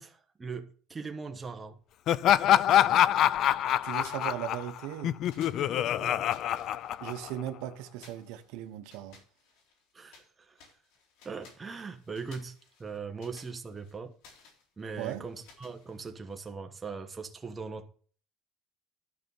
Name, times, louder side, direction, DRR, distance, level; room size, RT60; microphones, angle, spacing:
voice 1, 0.0-1.8 6.0-6.2 9.9-10.7 11.2-14.1 14.8-17.9, right 5 dB, 20° right, 1.2 m, -40 dB
Laughter, 2.1-7.5, left 11 dB, 50° left, 0.4 m, -25 dB
sound 1, 3.1-3.6 4.0-5.0 5.3-7.4 8.0-10.3 10.6-16.4, left 4 dB, 90° left, 3.9 m, -58 dB
voice 2, 3.8-5.2 7.0-9.2 15.0-15.2, right 12 dB, 85° right, 1.0 m, -37 dB
12.0 x 5.6 x 5.6 m
cardioid pair, 145°, 0 cm